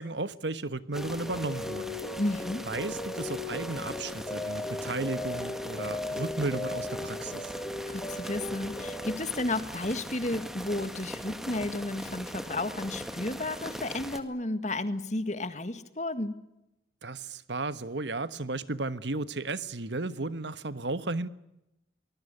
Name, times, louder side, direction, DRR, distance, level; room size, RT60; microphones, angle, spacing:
voice 1, 0.0-2.0 2.6-7.5 17.0-21.3, right 3 dB, 75° right, 1.3 m, -34 dB
sound 1, 0.9-9.2, left 2 dB, 15° left, 2.1 m, -37 dB
sound 2, 0.9-14.2, equal, ahead, 1.8 m, -41 dB
voice 2, 2.2-2.7 7.9-16.3, left 2 dB, 40° left, 1.8 m, -32 dB
24.5 x 20.5 x 9.8 m
head